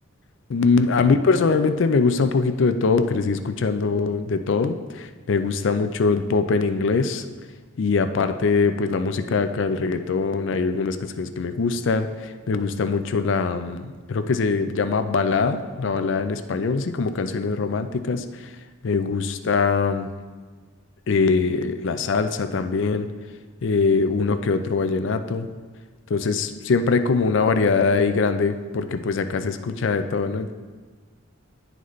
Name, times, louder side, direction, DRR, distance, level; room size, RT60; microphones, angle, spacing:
voice 1, 0.5-7.2 7.8-12.1 12.5-18.3 18.8-20.1 21.1-23.1 23.6-25.5 26.1-30.5, left 4 dB, 60° left, 9 dB, 0.4 m, -22 dB
11.0 x 4.0 x 3.2 m, 1.4 s
head